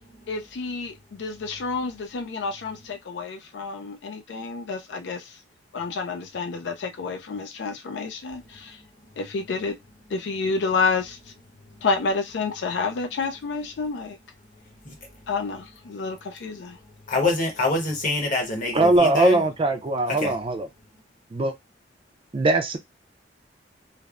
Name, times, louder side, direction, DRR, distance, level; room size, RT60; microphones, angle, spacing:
voice 1, 0.3-5.4 5.7-8.8 9.2-9.8 10.1-11.2 11.8-14.2 15.3-16.8, left 4 dB, 80° left, 0.4 m, -29 dB
voice 2, 17.1-19.5 20.1-20.4, left 2 dB, 50° left, 1.0 m, -26 dB
voice 3, 18.7-20.7 21.3-21.5 22.3-22.8, right 2 dB, 30° right, 0.4 m, -21 dB
3.2 x 2.0 x 2.3 m
head